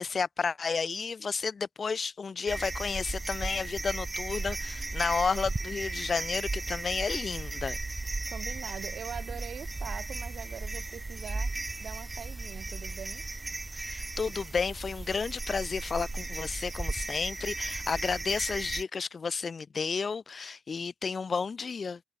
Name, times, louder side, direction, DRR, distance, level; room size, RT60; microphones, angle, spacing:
voice 1, 0.0-7.8 13.7-22.0, left 5 dB, 50° left, 0.4 m, -32 dB
sound 1, 2.5-18.8, right 2 dB, 25° right, 0.6 m, -36 dB
voice 2, 8.3-11.5 11.8-13.2, right 8 dB, 70° right, 0.3 m, -42 dB
cardioid pair, 65°, 0 cm